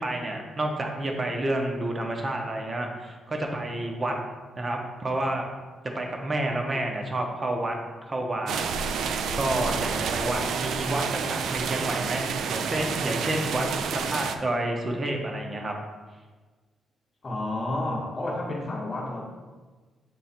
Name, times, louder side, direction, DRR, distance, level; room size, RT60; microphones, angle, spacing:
voice 1, 0.0-4.1 4.6-5.5 5.9-7.8 8.1-9.0 9.3-15.7, right 1 dB, 25° right, 2 dB, 0.8 m, -29 dB
sound 1, 8.5-14.4, right 6 dB, 70° right, 0.4 m, -29 dB
voice 2, 17.2-19.3, left 1 dB, 25° left, -1 dB, 1.1 m, -30 dB
7.7 x 3.1 x 4.3 m, 1.4 s
cardioid pair, 160°, 0 cm